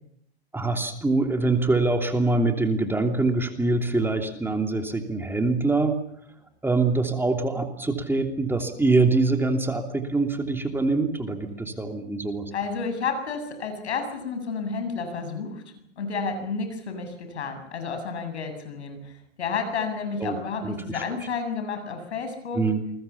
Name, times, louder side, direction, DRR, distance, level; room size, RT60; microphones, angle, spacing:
voice 1, 0.5-5.9 6.6-12.5 20.2-20.3 20.6-21.0 22.5-22.8, right 3 dB, 5° right, 4 dB, 2.9 m, -24 dB
voice 2, 12.5-15.6 16.0-19.1 19.4-22.6, left 5 dB, 80° left, 7 dB, 7.9 m, -31 dB
28.5 x 22.0 x 7.2 m, 0.72 s
hypercardioid pair, 120°, 33 cm